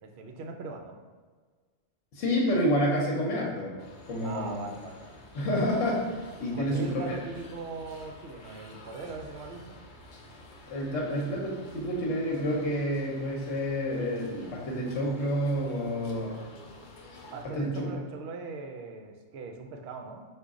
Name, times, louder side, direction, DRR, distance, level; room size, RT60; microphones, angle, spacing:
voice 1, 0.0-1.0 4.2-5.2 6.4-9.8 17.3-20.3, right 3 dB, 65° right, 5 dB, 0.7 m, -40 dB
voice 2, 2.1-3.8 4.1-4.7 5.3-6.0 6.4-7.2 10.7-16.4 17.5-17.9, equal, 65° left, -2 dB, 1.1 m, -29 dB
sound 1, 3.8-17.5, left 2 dB, 50° left, 0.6 m, -50 dB
5.0 x 2.5 x 3.6 m, 1.5 s
omnidirectional pair, 1.3 m